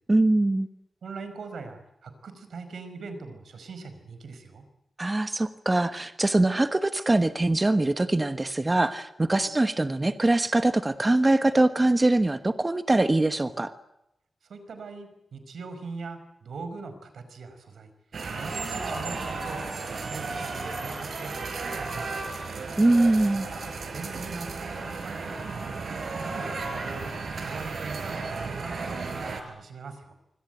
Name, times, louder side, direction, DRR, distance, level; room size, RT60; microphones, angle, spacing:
voice 1, 0.1-0.7 5.0-13.7 22.8-23.5, right 2 dB, 20° right, 10 dB, 1.2 m, -23 dB
voice 2, 1.0-4.6 14.5-17.9 18.3-19.6 19.9-22.4 23.9-25.8 26.2-30.1, right 4 dB, 85° right, 10 dB, 5.1 m, -41 dB
sound 1, 18.1-29.4, right 3 dB, 65° right, 4.8 m, -34 dB
26.0 x 25.0 x 8.1 m, 0.84 s
wide cardioid pair, 135°, 0 cm